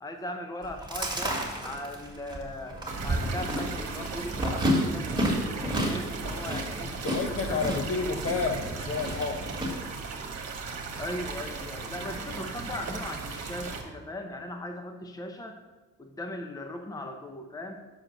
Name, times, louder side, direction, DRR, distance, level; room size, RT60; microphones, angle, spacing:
voice 1, 0.0-7.0 7.5-8.1 11.0-15.6 16.0-17.8, left 1 dB, 10° left, 5 dB, 0.7 m, -39 dB
Chewing mastication, 0.6-9.7, equal, 15° right, 1.9 m, -31 dB
sound 1, 2.9-13.8, right 4 dB, 60° right, 1.3 m, -37 dB
voice 2, 6.8-9.5, left 4 dB, 45° left, 5 dB, 0.9 m, -30 dB
6.5 x 4.9 x 5.9 m, 1.2 s
cardioid pair, 90°, 30 cm